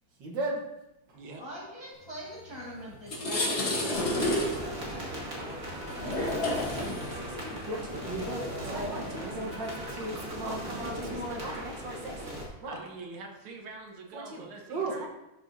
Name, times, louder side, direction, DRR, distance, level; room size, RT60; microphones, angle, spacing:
voice 1, 0.2-0.6 1.1-1.2 5.4-5.5 6.8-12.1 12.6-12.8 14.1-15.1, right 2 dB, 60° right, -1 dB, 1.8 m, -37 dB
voice 2, 1.4-7.1, equal, 15° left, -5 dB, 1.3 m, -45 dB
sound 1, 2.4-2.6 2.9-10.2, left 1 dB, 35° left, 1.3 m, -32 dB
sound 2, 3.9-12.4, equal, 40° right, 2.5 m, -38 dB
voice 3, 12.6-15.1, right 3 dB, 80° right, 1 dB, 1.9 m, -45 dB
12.5 x 4.7 x 2.7 m, 0.93 s
omnidirectional pair, 2.3 m